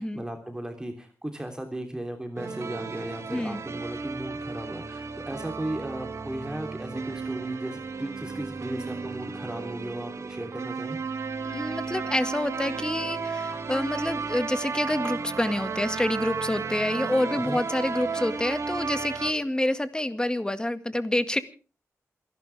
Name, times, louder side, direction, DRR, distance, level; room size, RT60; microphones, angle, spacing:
voice 1, 0.0-11.0 17.4-17.6, right 1 dB, 15° right, 4 dB, 3.3 m, -36 dB
sound 1, 2.4-19.3, right 5 dB, 60° right, 2.3 m, -34 dB
voice 2, 3.3-3.6 11.4-21.4, left 1 dB, 15° left, 10 dB, 1.9 m, -27 dB
28.0 x 11.5 x 3.5 m, 0.36 s
cardioid pair, 65°, 6 cm